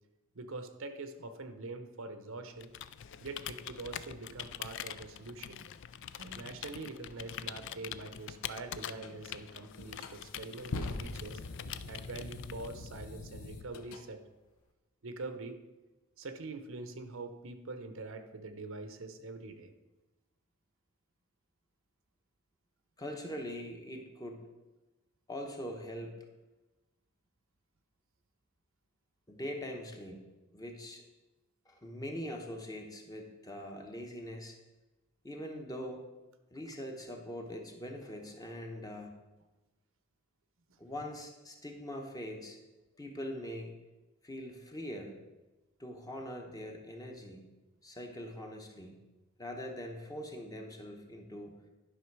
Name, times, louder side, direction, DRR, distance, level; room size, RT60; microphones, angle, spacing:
voice 1, 0.3-2.7 3.2-5.6 6.2-11.4 11.9-14.2 15.0-15.6 16.2-19.7 36.7-36.8, right 3 dB, 60° right, 9 dB, 0.8 m, -44 dB
Computer keyboard, 2.6-12.9, left 10 dB, 55° left, 0.3 m, -45 dB
sound 1, 9.0-9.1 9.7-14.0, left 2 dB, 70° left, 0.7 m, -42 dB
voice 2, 23.0-24.5 25.3-26.2 29.3-30.3 30.5-31.0 31.7-34.6 35.2-36.0 36.5-39.2 40.8-42.6 43.0-43.7 44.2-45.2 45.8-47.4 47.8-49.0 49.4-51.5, equal, 15° left, 2 dB, 1.0 m, -42 dB
11.5 x 5.7 x 4.7 m, 1.1 s
head